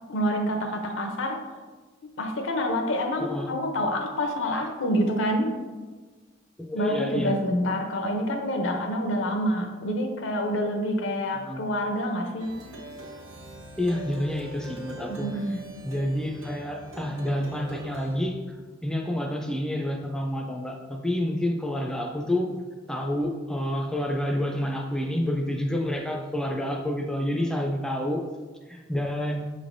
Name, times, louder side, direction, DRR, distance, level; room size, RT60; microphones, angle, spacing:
voice 1, 0.1-1.4 2.2-5.5 6.7-12.5 15.1-15.6, equal, 70° left, 4 dB, 0.6 m, -27 dB
voice 2, 3.2-3.5 6.6-7.4 11.3-11.6 13.8-15.4 15.8-18.6 18.8-22.5 22.9-28.2 28.7-29.5, left 1 dB, 5° left, 1 dB, 0.3 m, -29 dB
Plucked string instrument, 12.4-18.2, right 1 dB, 85° right, 0.7 m, -42 dB
5.7 x 3.3 x 2.6 m, 1.3 s
head